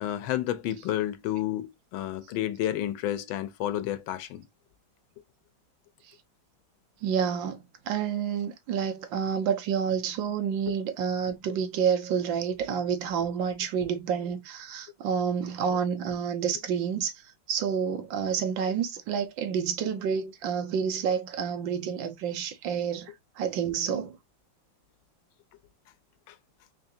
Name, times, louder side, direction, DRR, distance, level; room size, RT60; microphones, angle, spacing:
voice 1, 0.0-4.4 10.7-10.8 26.3-26.4, left 12 dB, 85° left, 1.4 m, -31 dB
voice 2, 7.0-17.1 17.5-24.1, right 7 dB, 75° right, 1.4 m, -29 dB
3.8 x 3.3 x 2.7 m
omnidirectional pair, 2.1 m